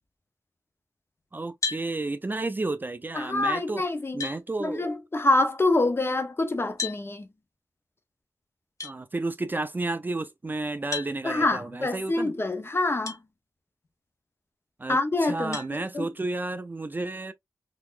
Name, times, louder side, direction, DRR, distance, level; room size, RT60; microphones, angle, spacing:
voice 1, 1.3-3.8 4.1-4.9 8.8-12.3 14.8-17.3, right 2 dB, 30° right, 0.4 m, -32 dB
sound 1, 1.6-1.9 3.5-3.6 4.2-4.4 6.8-7.0 8.8-9.0 10.9-11.1 13.0-13.2 13.8-13.9 15.5-15.7, left 5 dB, 60° left, 1.3 m, -32 dB
voice 2, 3.1-4.2 4.6-7.3 11.2-13.2 14.9-16.1, left 2 dB, 40° left, 0.9 m, -26 dB
3.9 x 2.8 x 2.5 m
wide cardioid pair, 75°, 6 cm